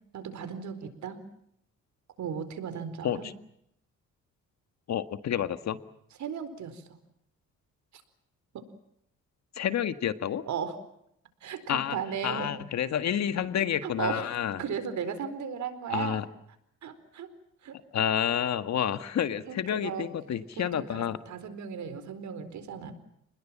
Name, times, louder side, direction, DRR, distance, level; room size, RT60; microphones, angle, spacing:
voice 1, 0.1-1.2 2.2-3.3 6.2-6.8 7.9-8.0 8.5-8.6 10.5-10.8 11.4-12.5 13.8-14.3 14.6-16.3 16.8-17.3 17.6-17.8 19.5-20.1 20.6-22.9, right 7 dB, 70° right, 11 dB, 4.4 m, -36 dB
voice 2, 4.9-5.8 9.5-10.4 11.7-12.0 12.2-14.6 15.9-16.2 17.9-21.2, left 9 dB, 60° left, 11 dB, 1.8 m, -29 dB
29.5 x 20.5 x 7.5 m, 0.75 s
cardioid pair, 90°, 30 cm